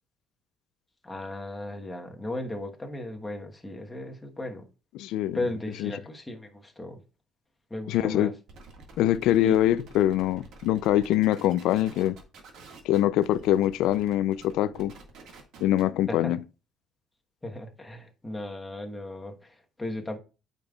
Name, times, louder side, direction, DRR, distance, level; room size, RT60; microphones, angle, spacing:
voice 1, 1.0-4.7 5.3-7.0 7.7-8.3 9.4-9.5 16.1-16.3 17.4-20.2, left 1 dB, 10° left, 1.1 m, -36 dB
voice 2, 4.9-5.4 5.8-5.9 7.9-8.3 9.0-12.2 12.8-14.9 15.6-16.4, left 13 dB, 80° left, 0.3 m, -24 dB
sound 1, 8.5-16.0, right 3 dB, 65° right, 1.7 m, -49 dB
8.8 x 5.2 x 2.3 m
cardioid pair, 145°, 0 cm